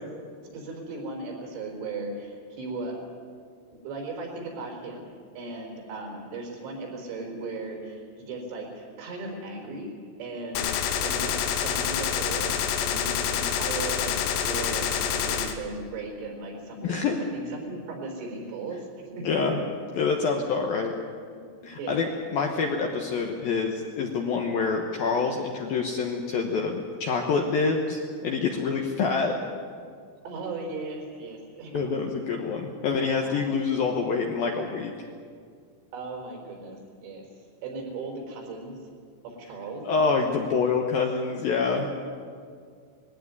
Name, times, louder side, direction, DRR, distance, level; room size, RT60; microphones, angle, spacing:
voice 1, 0.5-3.1 3.8-9.9 10.2-19.6 21.6-22.0 30.2-32.1 32.4-32.5 32.8-33.5 35.9-37.3 37.6-38.8 39.2-39.8, right 3 dB, 80° right, 1 dB, 6.8 m, -37 dB
Gunshot gunfire, 10.6-15.6, left 8 dB, 85° left, 3.8 m, -27 dB
voice 2, 16.8-17.2 19.2-19.6 20.0-20.9 21.6-29.4 31.7-34.9 39.8-41.9, left 5 dB, 70° left, 2 dB, 2.3 m, -26 dB
20.5 x 16.0 x 9.7 m, 2.1 s
omnidirectional pair, 5.8 m